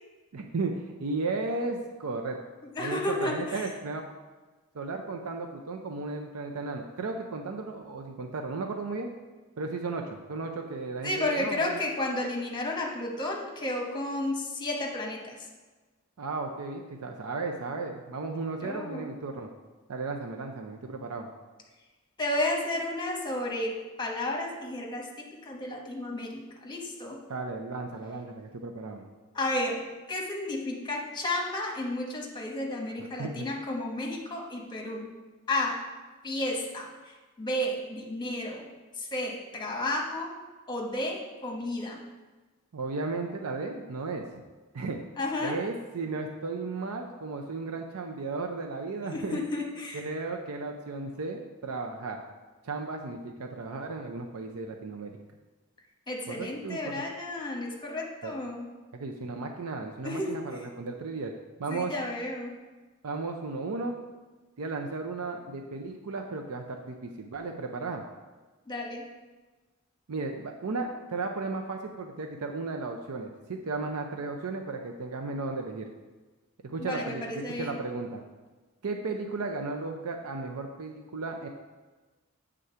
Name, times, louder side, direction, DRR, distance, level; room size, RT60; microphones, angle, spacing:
voice 1, 0.3-2.4 2.8-4.0 4.7-9.1 9.6-11.8 16.2-19.5 19.9-21.3 27.3-29.0 33.0-33.5 42.7-44.2 44.7-45.0 45.4-49.4 49.9-52.2 52.6-55.2 56.3-56.9 58.2-58.4 58.9-61.3 61.6-61.9 63.0-63.9 64.6-68.0 70.1-75.9 76.6-78.2 78.8-81.5, right 3 dB, 85° right, 3 dB, 0.6 m, -35 dB
voice 2, 2.7-3.6 11.0-15.4 18.6-19.1 22.2-23.7 24.0-25.1 25.4-27.2 29.3-29.8 30.1-35.1 35.5-35.8 36.2-36.9 37.4-38.7 39.0-40.3 40.7-42.0 45.2-45.5 49.1-50.0 56.1-58.6 60.0-60.4 61.7-62.5 68.7-69.0 76.8-77.8, left 1 dB, 20° left, -1 dB, 1.1 m, -32 dB
8.0 x 3.7 x 5.6 m, 1.3 s
head